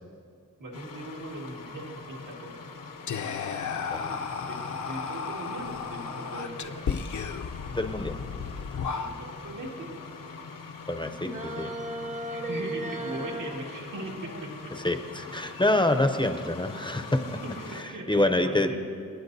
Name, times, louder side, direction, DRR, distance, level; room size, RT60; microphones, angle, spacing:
voice 1, 0.6-2.6 3.5-6.9 8.9-10.0 12.3-14.7 15.8-15.9 17.4-18.8, right 2 dB, 75° right, -2 dB, 1.9 m, -40 dB
sound 1, 0.7-17.8, left 4 dB, 85° left, 0.9 m, -43 dB
Whispering, 3.1-9.5, left 6 dB, 65° left, 0.6 m, -34 dB
voice 2, 7.7-8.1 10.9-11.7 14.8-17.4 17.7-18.8, left 1 dB, 15° left, 6 dB, 0.6 m, -26 dB
sound 2, 11.2-13.6, right 1 dB, 25° right, 0.7 m, -35 dB
28.5 x 9.9 x 2.7 m, 2.3 s
wide cardioid pair, 130°, 32 cm